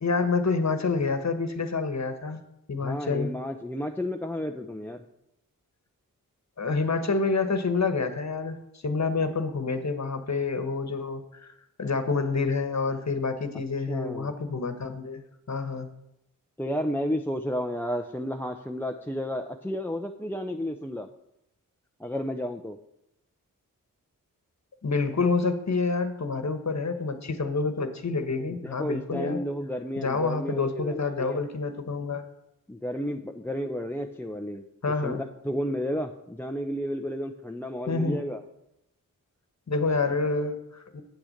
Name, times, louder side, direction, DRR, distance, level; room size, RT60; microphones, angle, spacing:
voice 1, 0.0-2.4 2.7-3.3 6.6-15.9 24.8-29.4 30.0-32.2 34.8-35.2 37.9-38.2 39.7-41.0, left 4 dB, 50° left, 8 dB, 1.3 m, -28 dB
voice 2, 2.8-5.0 13.9-14.3 16.6-21.1 22.0-22.8 28.5-31.4 32.7-34.6 35.0-35.2 35.4-38.4, equal, 5° left, 5 dB, 0.7 m, -32 dB
8.5 x 6.2 x 6.6 m, 0.84 s
cardioid pair, 40°, 35 cm